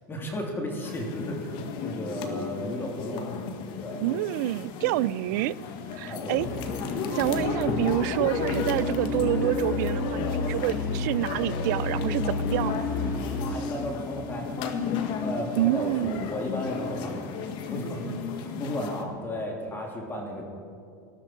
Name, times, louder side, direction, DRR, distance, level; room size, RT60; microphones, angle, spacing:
voice 1, 0.1-3.3 3.8-4.0 6.0-6.4 13.5-14.5 15.2-17.2 17.7-20.4, left 1 dB, 20° left, 0 dB, 3.1 m, -34 dB
sound 1, 0.8-19.0, left 6 dB, 50° left, 1.5 m, -34 dB
voice 2, 4.0-5.6 5.9-6.5 7.1-12.9 15.5-16.3, right 17 dB, 65° right, 20 dB, 0.4 m, -27 dB
sound 2, 6.4-13.5, left 2 dB, 75° left, 4.3 m, -33 dB
sound 3, 6.5-17.7, left 2 dB, 5° left, 0.4 m, -37 dB
19.0 x 13.0 x 4.6 m, 2.3 s
supercardioid pair, 110°, 10 cm